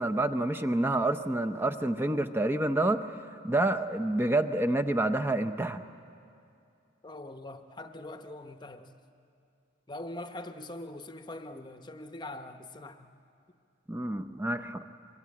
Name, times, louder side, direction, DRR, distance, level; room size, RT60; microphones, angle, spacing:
voice 1, 0.0-3.1 3.4-5.8 13.9-14.8, right 2 dB, 10° right, 7 dB, 0.6 m, -28 dB
voice 2, 7.0-8.9 9.9-13.1, left 1 dB, 20° left, 8 dB, 0.8 m, -42 dB
25.0 x 22.5 x 8.6 m, 2.5 s
head